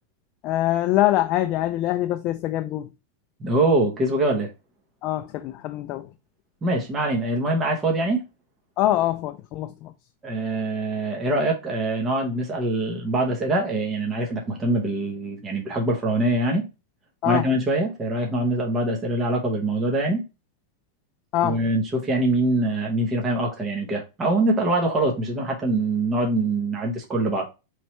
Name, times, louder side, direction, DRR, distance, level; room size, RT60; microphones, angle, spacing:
voice 1, 0.4-2.9 5.0-6.1 8.8-9.9 17.2-17.5 21.3-21.6, left 14 dB, 35° left, 0.3 m, -24 dB
voice 2, 3.4-4.5 6.6-8.2 10.2-16.6 17.2-20.2 21.4-27.5, right 2 dB, 15° right, 0.8 m, -24 dB
4.3 x 3.2 x 3.0 m
supercardioid pair, 165°, 0 cm